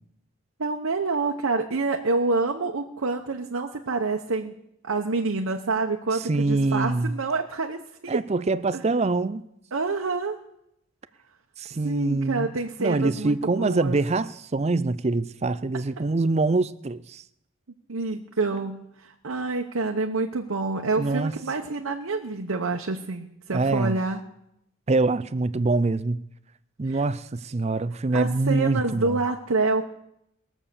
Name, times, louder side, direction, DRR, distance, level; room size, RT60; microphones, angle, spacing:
voice 1, 0.6-4.5 4.8-8.2 8.7-8.8 9.7-10.4 11.8-14.0 17.9-24.2 26.8-27.0 28.1-29.9, right 3 dB, 85° right, 2 dB, 0.9 m, -27 dB
voice 2, 6.2-7.1 8.1-9.4 11.6-12.5 12.8-17.2 20.9-21.3 23.5-24.0 24.9-26.2 26.8-29.2, right 3 dB, 30° right, 16 dB, 0.5 m, -24 dB
21.0 x 7.3 x 6.8 m, 0.81 s
head